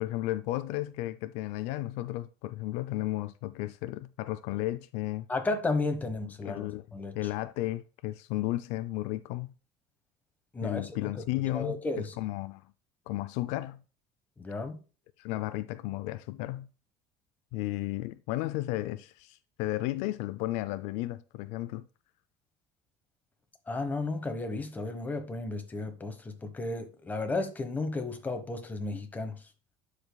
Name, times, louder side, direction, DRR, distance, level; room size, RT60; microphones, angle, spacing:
voice 1, 0.0-5.3 6.2-6.9 7.1-9.5 10.6-12.6 13.1-13.8 15.2-16.7 17.5-21.9, left 16 dB, 75° left, 0.4 m, -34 dB
voice 2, 5.3-7.1 10.5-11.2 11.5-12.1 14.4-14.8 23.7-29.4, left 3 dB, 15° left, 1.2 m, -33 dB
12.5 x 4.9 x 2.3 m
cardioid pair, 130°, 11 cm